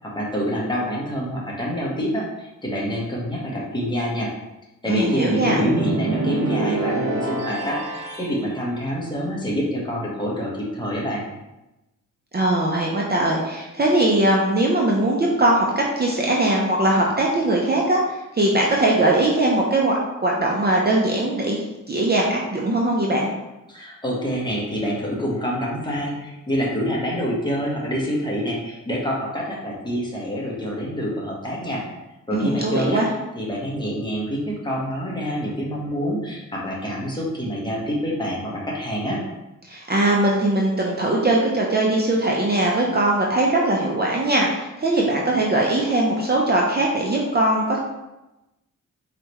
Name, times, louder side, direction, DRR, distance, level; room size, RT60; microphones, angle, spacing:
voice 1, 0.0-4.3 4.8-11.2 23.7-31.8 32.3-33.0 33.3-39.2, equal, 15° left, -4 dB, 1.3 m, -26 dB
voice 2, 4.9-5.6 12.3-23.3 32.3-33.1 39.7-47.8, right 1 dB, 30° right, -2 dB, 0.7 m, -20 dB
sound 1, 5.4-8.4, right 2 dB, 85° right, 1.1 m, -26 dB
4.6 x 3.4 x 3.0 m, 0.99 s
cardioid pair, 85°, 33 cm